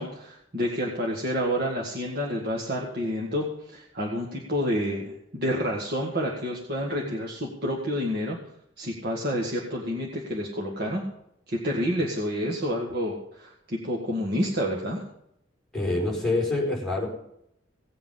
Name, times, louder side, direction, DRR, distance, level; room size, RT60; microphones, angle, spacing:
voice 1, 0.0-8.4 8.8-11.0 11.5-15.0, equal, 55° right, -1 dB, 1.9 m, -29 dB
voice 2, 15.7-17.1, left 2 dB, 5° left, -5 dB, 4.4 m, -26 dB
18.0 x 7.8 x 5.6 m, 0.77 s
head